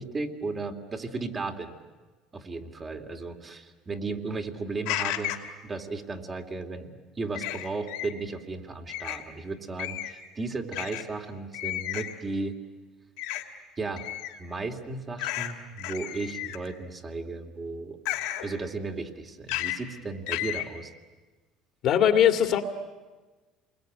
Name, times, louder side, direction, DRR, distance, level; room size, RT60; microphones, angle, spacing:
voice 1, 0.0-1.7 2.3-5.3 5.6-6.9 7.2-12.6 13.8-14.1 14.4-18.0 18.4-20.9, right 3 dB, 30° right, 4 dB, 2.8 m, -35 dB
sound 1, 4.8-5.5 7.3-8.1 8.9-9.2 9.8-10.2 10.7-11.0 11.5-12.1 13.2-13.4 14.0-14.4 15.2-15.5 15.8-16.7 18.0-18.4 19.5-19.8 20.3-20.6, left 15 dB, 80° left, 2.7 m, -32 dB
voice 2, 21.8-22.6, left 9 dB, 60° left, 6 dB, 2.2 m, -20 dB
28.0 x 22.0 x 9.4 m, 1.3 s
supercardioid pair, 95°, 0 cm